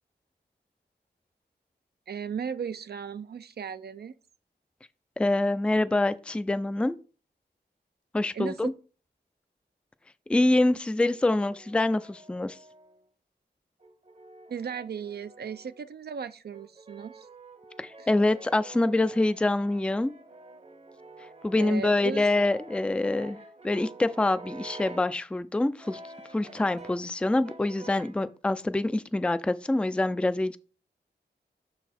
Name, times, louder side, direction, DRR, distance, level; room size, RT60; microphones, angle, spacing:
voice 1, 2.1-4.2 8.3-8.7 14.5-17.3 18.0-18.1 21.6-22.3, right 7 dB, 60° right, 0.4 m, -36 dB
voice 2, 5.2-7.0 8.1-8.7 10.3-12.6 17.8-20.1 21.4-23.4 23.6-26.0 26.3-30.6, left 2 dB, 5° left, 0.4 m, -25 dB
Brass instrument, 11.1-13.1 13.8-15.8 16.5-25.2 25.8-27.1 27.4-28.3, right 3 dB, 35° right, 0.8 m, -48 dB
6.1 x 3.9 x 4.2 m
cardioid pair, 55°, 19 cm